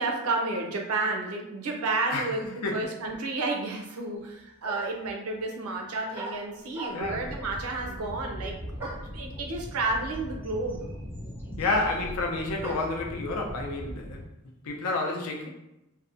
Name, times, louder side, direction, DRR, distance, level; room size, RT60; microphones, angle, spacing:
voice 1, 0.0-10.8, right 3 dB, 85° right, 2 dB, 0.5 m, -31 dB
sound 1, 4.2-4.3 4.6-5.1 6.1-7.3 8.8-9.2 10.1-10.2 10.4-13.0, right 2 dB, 10° right, 0.4 m, -41 dB
voice 2, 6.9-7.2 11.6-14.2 14.6-15.5, left 3 dB, 85° left, 1 dB, 0.5 m, -29 dB
sound 2, 7.0-14.3, equal, 30° left, 0.7 m, -40 dB
2.6 x 2.1 x 2.5 m, 0.90 s
head